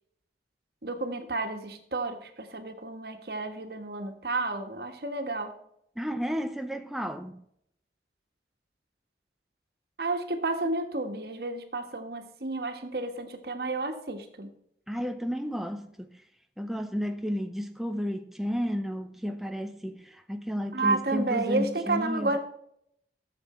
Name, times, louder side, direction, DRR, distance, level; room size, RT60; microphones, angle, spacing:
voice 1, 0.8-5.5 10.0-14.5 20.7-22.4, right 2 dB, 60° right, 1.5 m, -31 dB
voice 2, 6.0-7.4 14.9-16.2 16.6-22.3, equal, ahead, 0.6 m, -32 dB
13.0 x 7.5 x 4.3 m
head